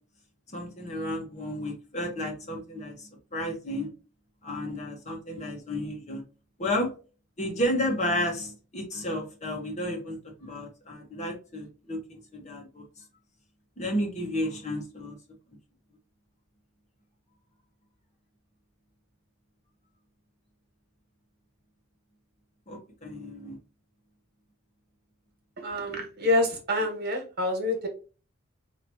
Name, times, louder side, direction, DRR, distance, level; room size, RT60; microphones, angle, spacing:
voice 1, 0.5-3.9 4.4-6.2 6.6-6.9 7.4-12.8 13.8-15.2 22.7-23.6, left 1 dB, 35° left, 1 dB, 1.2 m, -32 dB
voice 2, 25.6-27.9, left 1 dB, 50° right, 3 dB, 1.5 m, -27 dB
4.9 x 2.9 x 3.0 m, 0.34 s
head